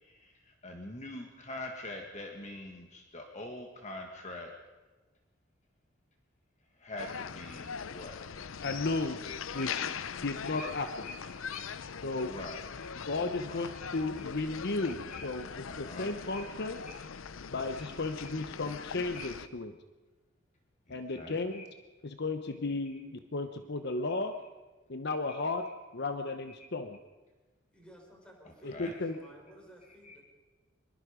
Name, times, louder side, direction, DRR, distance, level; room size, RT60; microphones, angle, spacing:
voice 1, 0.0-4.5 6.8-8.2 9.6-9.9 10.6-10.7 11.0-11.1 11.5-11.7 12.3-12.9 13.5-13.9 15.1-15.3 15.7-16.4 16.9-17.0 19.1-19.3 20.9-21.6 28.7-28.9 30.0-30.2, left 2 dB, 35° left, 2 dB, 1.8 m, -44 dB
sound 1, 7.0-19.5, left 7 dB, 80° left, 0.6 m, -41 dB
voice 2, 8.6-9.9 10.2-11.1 12.0-12.4 12.9-16.8 17.5-19.7 20.9-21.6 22.0-24.3 24.9-25.7 25.9-27.0 28.6-29.2, left 3 dB, 60° left, 8 dB, 1.0 m, -34 dB
voice 3, 27.7-30.2, equal, 5° left, -1 dB, 5.5 m, -55 dB
24.5 x 22.0 x 5.1 m, 1.2 s
head